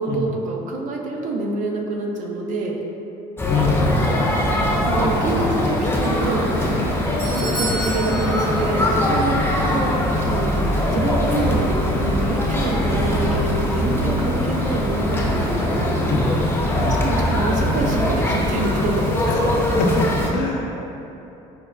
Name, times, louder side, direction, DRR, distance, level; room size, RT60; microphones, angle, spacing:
voice 1, 0.0-2.7 4.8-6.5 7.4-9.4 9.7-9.9 10.2-10.6 10.9-16.0 17.0-19.1, right 2 dB, 55° right, 0 dB, 0.5 m, -26 dB
sound 1, 3.4-20.3, left 1 dB, 15° left, 0.6 m, -21 dB
voice 2, 3.5-4.2 16.1-16.2 16.5-17.0 19.3-20.8, left 3 dB, 80° left, 0 dB, 0.5 m, -25 dB
Doorbell, 6.7-9.2 9.5-9.6 10.3-10.4, right 1 dB, 75° right, 1.2 m, -31 dB
5.2 x 2.1 x 2.3 m, 2.9 s
supercardioid pair, 95°, 15 cm